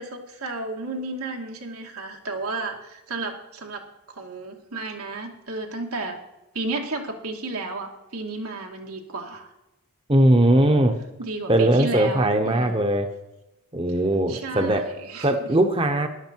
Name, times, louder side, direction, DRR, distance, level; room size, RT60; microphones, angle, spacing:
voice 1, 0.0-6.2 6.5-9.5 11.2-12.9 14.3-15.5, right 3 dB, 90° right, 1 dB, 2.1 m, -33 dB
voice 2, 10.1-10.9 11.5-13.1 13.7-14.8 15.2-16.1, right 1 dB, 25° right, 6 dB, 0.8 m, -19 dB
14.0 x 11.0 x 4.6 m, 0.96 s
head